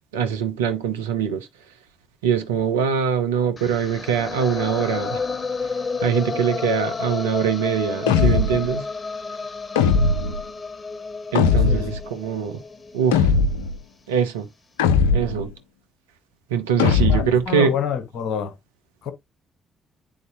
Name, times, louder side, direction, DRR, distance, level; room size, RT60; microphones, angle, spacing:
voice 1, 0.1-1.5 2.2-5.2 6.0-8.9 11.3-12.6 12.9-13.3 14.1-14.5 15.1-15.5 16.5-17.7, right 7 dB, 80° right, 0.7 m, -23 dB
sound 1, 3.6-13.6, left 4 dB, 35° left, 1.3 m, -31 dB
sound 2, 8.1-8.7 9.8-10.4 11.3-12.0 13.1-13.7 14.8-15.5 16.8-17.4, left 5 dB, 80° left, 0.4 m, -19 dB
voice 2, 17.0-18.5 19.0-19.1, left 7 dB, 60° left, 1.2 m, -27 dB
8.7 x 4.0 x 2.7 m
figure-of-eight pair, 40°, 0 cm